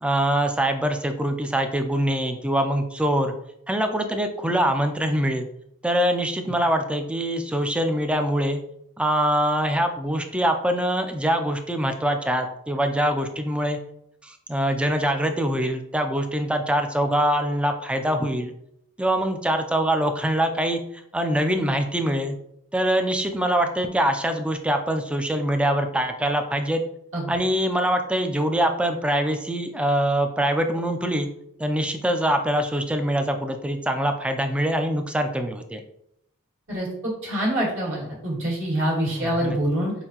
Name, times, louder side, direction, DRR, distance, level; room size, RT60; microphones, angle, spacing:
voice 1, 0.0-3.3 3.7-5.5 5.8-8.6 9.0-13.8 14.2-18.5 19.0-20.8 21.1-22.4 22.7-26.8 27.3-31.3 31.6-35.8 39.1-39.6, right 1 dB, 5° right, 6 dB, 0.3 m, -24 dB
voice 2, 36.7-39.9, right 1 dB, 60° right, -5 dB, 1.7 m, -25 dB
5.6 x 2.6 x 2.8 m, 0.76 s
head